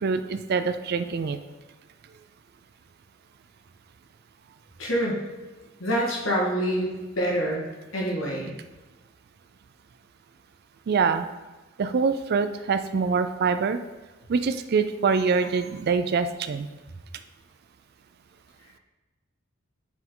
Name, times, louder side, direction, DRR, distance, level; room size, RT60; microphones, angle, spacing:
voice 1, 0.0-1.4 10.9-11.2 11.8-13.8 14.3-16.7, right 5 dB, 50° right, 10 dB, 0.4 m, -24 dB
voice 2, 4.8-5.2 5.8-7.7 7.9-8.5, equal, 75° left, -2 dB, 1.7 m, -26 dB
6.0 x 4.6 x 3.7 m, 1.2 s
head